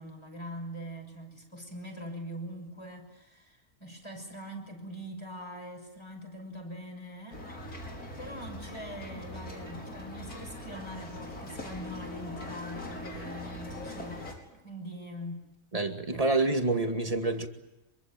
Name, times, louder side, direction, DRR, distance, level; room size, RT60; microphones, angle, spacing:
voice 1, 0.0-7.6 8.2-15.5, equal, 20° left, 3 dB, 6.3 m, -42 dB
sound 1, 7.3-14.3, left 1 dB, 90° left, 5.5 m, -41 dB
voice 2, 15.7-17.5, right 2 dB, 25° right, 5 dB, 2.3 m, -27 dB
26.0 x 24.0 x 9.0 m, 0.97 s
omnidirectional pair, 1.5 m